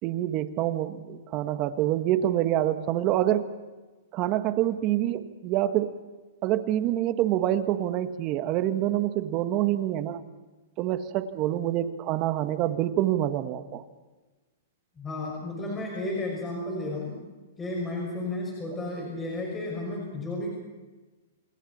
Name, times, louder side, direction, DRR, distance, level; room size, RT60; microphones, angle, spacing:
voice 1, 0.0-3.5 4.1-6.0 6.4-10.2 10.8-13.8, right 12 dB, 35° right, 9 dB, 1.6 m, -26 dB
voice 2, 15.0-17.2 17.6-20.5, left 2 dB, 15° left, -2 dB, 6.2 m, -33 dB
28.0 x 27.0 x 4.4 m, 1.2 s
hypercardioid pair, 140°, 0 cm